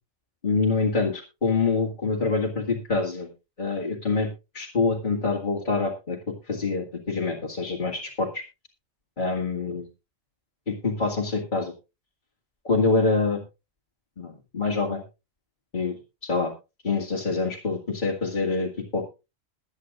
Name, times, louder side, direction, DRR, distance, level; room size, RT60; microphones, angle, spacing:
voice 1, 0.4-3.3 3.6-4.3 4.5-6.2 6.5-8.4 9.2-9.8 10.7-11.7 12.6-13.4 14.2-15.0 15.7-15.9 16.3-16.5 16.8-19.0, left 3 dB, 35° left, -3 dB, 2.3 m, -25 dB
21.5 x 8.9 x 2.5 m, 0.27 s
omnidirectional pair, 1.3 m